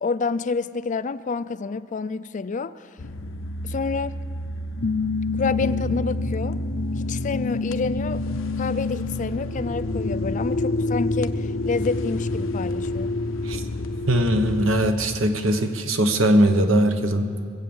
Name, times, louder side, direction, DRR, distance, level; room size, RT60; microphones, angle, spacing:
voice 1, 0.0-2.9 3.6-4.2 5.3-6.6 7.0-8.3 8.6-13.1, left 4 dB, 40° left, 15 dB, 0.4 m, -28 dB
sound 1, 3.0-15.0, left 2 dB, 80° left, 0.7 m, -27 dB
voice 2, 14.1-17.4, right 1 dB, 85° right, 7 dB, 1.2 m, -20 dB
22.0 x 8.4 x 7.2 m, 2.2 s
head